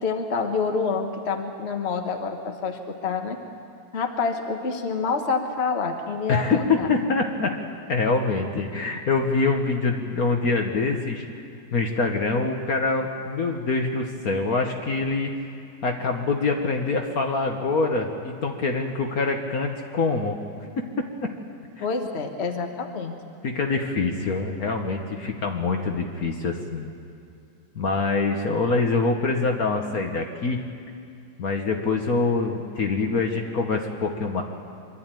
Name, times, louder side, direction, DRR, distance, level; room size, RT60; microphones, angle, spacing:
voice 1, 0.0-3.4 3.9-6.9 21.8-23.1, left 4 dB, 40° left, 4 dB, 1.4 m, -27 dB
voice 2, 6.3-7.6 7.9-11.2 11.7-15.3 15.8-20.6 21.8-21.9 23.4-26.9 27.7-30.6 31.4-34.4, left 3 dB, 55° left, 3 dB, 1.6 m, -25 dB
24.5 x 12.0 x 9.1 m, 2.4 s
omnidirectional pair, 2.0 m